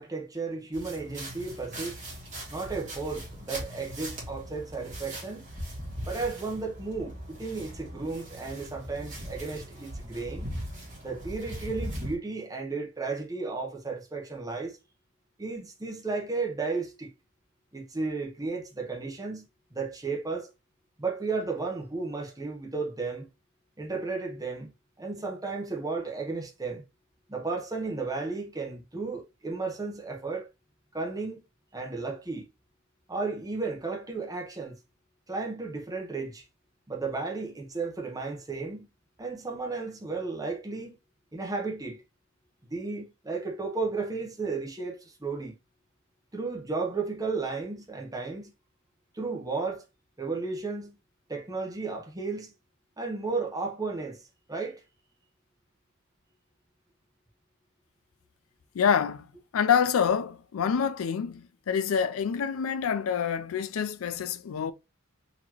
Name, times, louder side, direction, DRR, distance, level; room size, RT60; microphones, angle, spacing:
voice 1, 0.0-2.0 2.5-5.5 6.0-10.5 11.0-14.8 15.4-17.1 17.7-20.5 21.0-23.3 23.8-26.8 27.3-30.5 30.9-31.4 31.7-32.5 33.1-34.8 35.3-36.4 36.9-38.9 39.2-41.0 41.3-42.0 42.6-45.6 46.3-48.5 49.1-49.8 50.2-50.9 51.3-52.5 53.0-54.2 54.5-54.8, right 4 dB, 15° right, 0.8 m, -34 dB
sound 1, 0.7-12.2, equal, 35° right, 1.8 m, -40 dB
voice 2, 58.7-59.3 59.5-64.7, left 7 dB, 70° left, 0.4 m, -27 dB
4.0 x 2.9 x 2.9 m
head